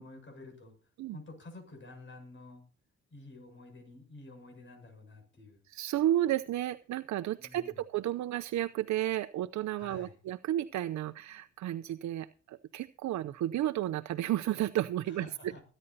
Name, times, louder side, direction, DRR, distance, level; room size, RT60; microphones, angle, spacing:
voice 1, 0.0-2.6 3.1-5.6 7.4-7.8 9.8-10.1 15.1-15.6, left 2 dB, 40° left, 3 dB, 7.1 m, -50 dB
voice 2, 5.7-15.5, right 13 dB, 70° right, 11 dB, 0.7 m, -32 dB
22.0 x 10.0 x 2.8 m, 0.38 s
cardioid pair, 90°, 30 cm